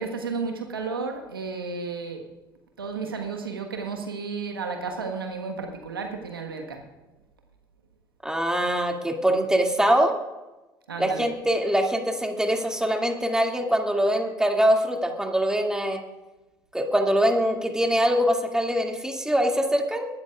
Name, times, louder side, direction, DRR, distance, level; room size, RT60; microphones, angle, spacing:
voice 1, 0.0-2.2 2.8-6.8 10.9-11.3, right 4 dB, 90° right, 3 dB, 1.4 m, -32 dB
voice 2, 8.2-10.2 11.0-16.0 16.7-20.1, equal, 5° right, 2 dB, 2.3 m, -23 dB
23.0 x 12.5 x 2.4 m, 1.1 s
hypercardioid pair, 60°, 12 cm